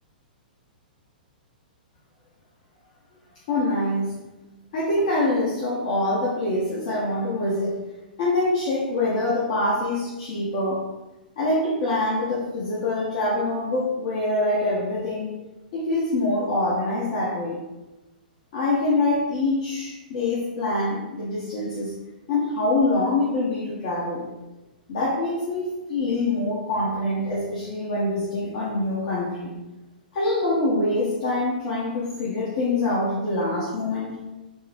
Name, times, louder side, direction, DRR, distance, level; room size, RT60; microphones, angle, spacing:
voice 1, 3.5-4.1 4.7-7.9 8.2-10.9 11.4-15.3 15.7-17.6 18.5-22.0 22.3-24.3 24.9-29.5 30.1-34.2, left 2 dB, 55° left, -7 dB, 0.7 m, -25 dB
3.7 x 2.0 x 2.5 m, 1.1 s
figure-of-eight pair, 110°, 5 cm